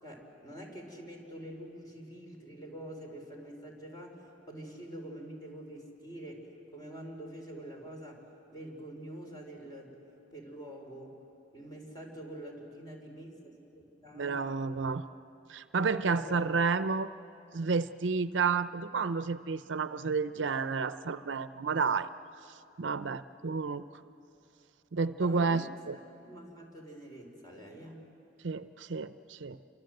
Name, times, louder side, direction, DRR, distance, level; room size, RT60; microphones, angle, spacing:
voice 1, 0.0-8.2 8.5-10.0 10.3-11.2 11.5-14.7 16.0-16.4 25.2-25.6 26.2-28.1, right 1 dB, 20° left, 1 dB, 4.4 m, -46 dB
voice 2, 14.1-15.0 15.5-17.1 17.5-22.1 22.8-23.8 24.9-26.0 28.4-29.6, right 5 dB, 75° right, 12 dB, 0.6 m, -31 dB
29.0 x 24.5 x 7.8 m, 2.8 s
head